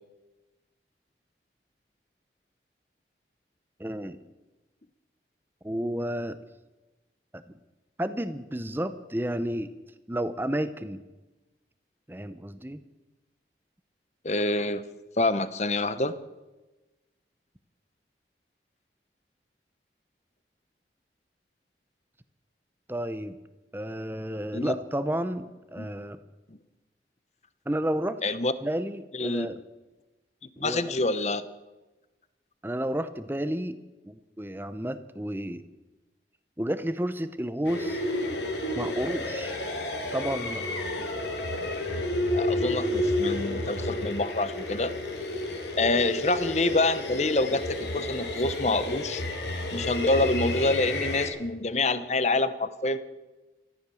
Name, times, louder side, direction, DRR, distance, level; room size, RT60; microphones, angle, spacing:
voice 1, 3.8-4.2 5.6-6.4 7.3-7.4 8.0-9.7 10.1-11.0 12.1-12.8 22.9-23.4 23.7-26.2 27.7-28.2 28.6-29.6 30.6-30.8 32.6-33.8 34.0-35.6 36.6-38.0 38.8-39.6 40.1-40.7, right 1 dB, 10° right, 12 dB, 0.7 m, -31 dB
voice 2, 14.2-14.8 15.2-16.1 24.5-24.7 25.8-25.9 28.2-28.5 29.1-29.5 30.6-31.5 42.3-44.9 45.8-49.2 49.7-53.0, left 2 dB, 40° left, 14 dB, 0.9 m, -26 dB
sound 1, 37.6-51.3, left 1 dB, 80° left, 3.3 m, -31 dB
14.5 x 14.0 x 7.0 m, 1.1 s
head